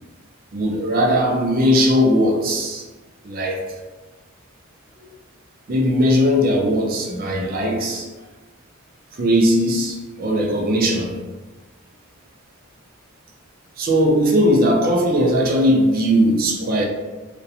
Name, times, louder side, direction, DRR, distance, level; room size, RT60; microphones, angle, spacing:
voice 1, 0.5-2.8 3.2-3.6 5.7-8.1 9.1-11.1 13.8-16.9, equal, 40° right, 1 dB, 0.4 m, -18 dB
2.3 x 2.1 x 2.7 m, 1.2 s
head